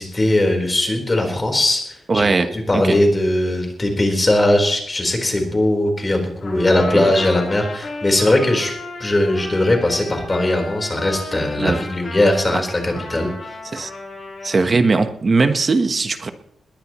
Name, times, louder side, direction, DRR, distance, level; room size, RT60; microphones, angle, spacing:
voice 1, 0.0-8.7 9.0-13.5, left 1 dB, 20° left, 2 dB, 4.1 m, -19 dB
voice 2, 2.1-3.0 6.9-7.1 11.6-11.8 12.5-12.6 13.7-13.9 14.4-16.3, right 3 dB, 30° right, 8 dB, 1.1 m, -19 dB
Trumpet, 6.4-14.6, left 2 dB, 45° left, 7.8 m, -34 dB
21.0 x 18.0 x 3.1 m, 0.73 s
wide cardioid pair, 150°, 0 cm